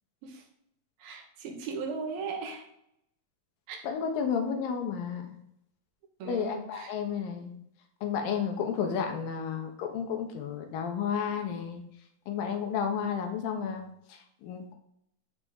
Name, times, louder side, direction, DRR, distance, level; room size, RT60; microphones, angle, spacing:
voice 1, 1.0-2.6 3.7-3.8 6.2-6.9, right 5 dB, 85° right, 2 dB, 3.3 m, -37 dB
voice 2, 3.8-5.4 6.3-7.5 8.0-11.8 12.3-14.7, left 7 dB, 75° left, 4 dB, 2.9 m, -32 dB
14.0 x 5.0 x 3.7 m, 0.77 s
omnidirectional pair, 4.1 m